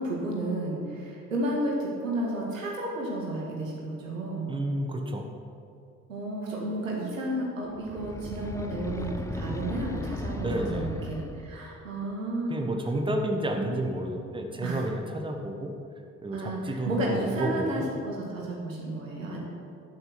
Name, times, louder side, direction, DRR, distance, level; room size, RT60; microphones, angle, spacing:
voice 1, 0.0-4.5 6.1-12.6 14.6-14.9 16.3-19.4, right 1 dB, 80° right, -2 dB, 2.0 m, -32 dB
voice 2, 4.5-5.2 10.4-11.1 12.5-15.7 16.2-17.9, right 1 dB, 15° right, 2 dB, 1.5 m, -30 dB
sound 1, 7.8-11.7, left 2 dB, 10° left, 0.7 m, -36 dB
11.5 x 7.8 x 6.2 m, 2.5 s
figure-of-eight pair, 55°, 38 cm